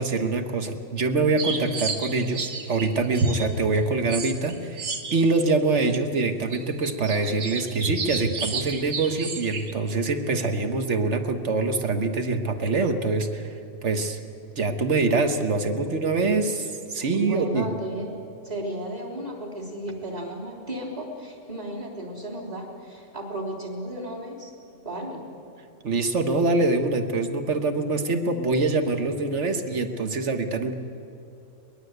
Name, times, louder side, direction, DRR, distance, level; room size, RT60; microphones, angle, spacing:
voice 1, 0.0-13.5 13.8-14.2 14.6-17.7 25.8-30.7, right 3 dB, 45° right, 7 dB, 1.6 m, -24 dB
sound 1, 1.4-5.5 5.9-6.0 6.4-9.7, right 3 dB, 70° right, 2.1 m, -31 dB
voice 2, 15.5-15.9 17.0-18.1 18.4-24.5 24.8-25.3, right 1 dB, 20° right, -2 dB, 3.7 m, -34 dB
22.0 x 20.5 x 8.1 m, 2.6 s
omnidirectional pair, 1.9 m